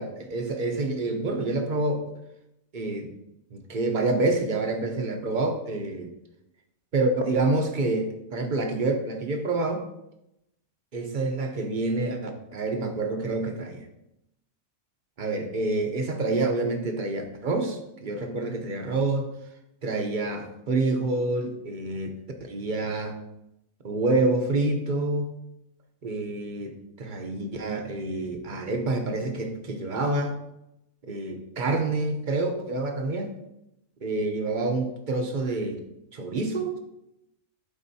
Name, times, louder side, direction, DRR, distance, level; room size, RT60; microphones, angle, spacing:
voice 1, 0.0-2.0 2.7-3.1 3.5-6.1 6.9-9.8 10.9-13.8 15.2-19.3 19.8-22.2 22.5-23.2 23.8-25.3 26.0-30.4 31.0-33.3 34.0-35.8 36.1-36.8, right 2 dB, 40° right, 4 dB, 0.8 m, -27 dB
12.0 x 4.2 x 2.7 m, 0.86 s
omnidirectional pair, 1.6 m